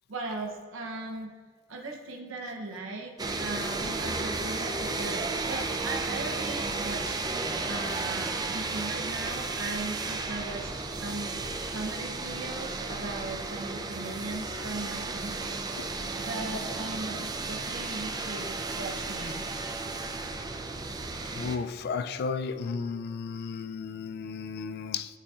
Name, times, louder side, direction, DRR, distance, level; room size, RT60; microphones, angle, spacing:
voice 1, 0.1-1.3 1.7-3.1 3.4-15.6 16.2-19.5, right 2 dB, 75° right, 0.7 m, -38 dB
sound 1, 3.2-21.6, right 3 dB, 20° right, 0.4 m, -33 dB
voice 2, 21.3-25.2, left 5 dB, 55° left, 0.3 m, -34 dB
11.0 x 4.2 x 2.4 m
head